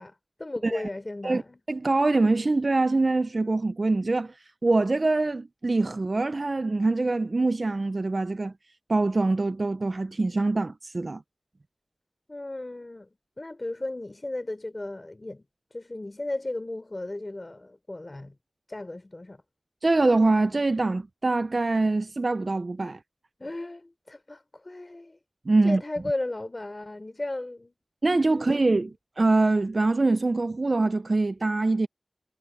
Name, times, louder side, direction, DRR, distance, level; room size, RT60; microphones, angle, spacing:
voice 1, 0.0-1.6 12.3-13.1 13.4-15.4 15.7-18.3 18.7-19.4 23.4-25.2 25.6-27.7 28.3-28.6, left 2 dB, 45° left, 3.4 m, -35 dB
voice 2, 1.7-4.3 4.6-8.5 8.9-11.2 19.8-23.0 25.5-25.8 28.0-31.9, right 3 dB, 60° right, 0.5 m, -24 dB
wide cardioid pair, 55°, 0 cm